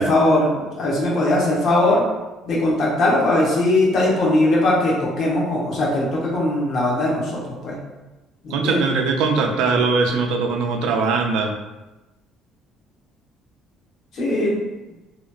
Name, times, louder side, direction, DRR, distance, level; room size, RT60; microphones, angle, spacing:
voice 1, 0.0-2.0 2.4-7.8 8.4-8.8 14.1-14.7, left 1 dB, 60° left, -4 dB, 1.1 m, -20 dB
voice 2, 8.5-11.5, right 4 dB, 75° right, 3 dB, 0.4 m, -21 dB
2.9 x 2.9 x 2.4 m, 1.1 s
supercardioid pair, 80°, 0 cm